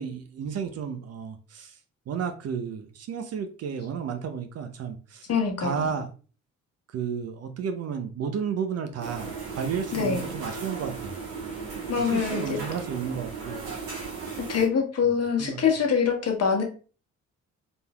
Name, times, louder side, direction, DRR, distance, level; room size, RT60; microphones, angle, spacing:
voice 1, 0.0-1.7 2.1-5.3 5.6-6.1 6.9-11.2 12.0-13.6 15.4-15.6, right 7 dB, 40° right, 7 dB, 0.6 m, -32 dB
voice 2, 5.3-5.9 9.9-10.2 11.9-12.6 14.5-16.6, left 6 dB, 40° left, 3 dB, 1.1 m, -24 dB
sound 1, 9.0-14.7, right 4 dB, 65° right, 1.8 m, -36 dB
4.3 x 3.4 x 2.2 m, 0.37 s
figure-of-eight pair, 45°, 39 cm